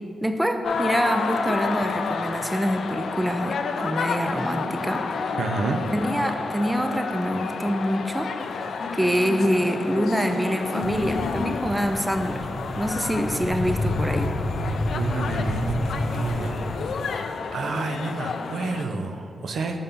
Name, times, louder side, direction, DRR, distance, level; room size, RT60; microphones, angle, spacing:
voice 1, 0.2-5.1 5.9-8.3 8.9-12.5 12.8-14.3, equal, 10° right, 6 dB, 0.3 m, -25 dB
sound 1, 0.6-18.8, left 5 dB, 80° left, 0.3 m, -30 dB
voice 2, 5.4-5.8 14.9-16.6 17.5-19.8, right 3 dB, 80° right, 4 dB, 0.4 m, -28 dB
sound 2, 10.8-16.9, left 2 dB, 40° left, 0.8 m, -30 dB
5.2 x 3.6 x 5.7 m, 2.5 s
wide cardioid pair, 125°, 0 cm